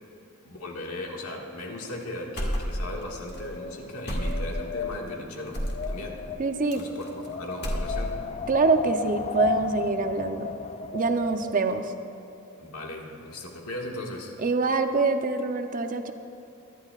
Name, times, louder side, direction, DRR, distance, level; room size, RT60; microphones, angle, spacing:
voice 1, 0.4-6.3 6.7-8.2 12.6-14.4, left 1 dB, 80° left, -1 dB, 1.9 m, -37 dB
sound 1, 2.4-3.0 3.3-3.4 4.1-4.7 5.5-5.9 6.7-7.3 7.5-8.3, equal, 50° left, 1.8 m, -30 dB
Wind, 2.6-11.8, left 6 dB, 30° left, 0.4 m, -35 dB
voice 2, 6.4-6.8 8.5-10.5 10.9-11.9 14.4-16.1, right 3 dB, 35° right, 7 dB, 0.6 m, -25 dB
23.5 x 11.0 x 2.4 m, 2.8 s
head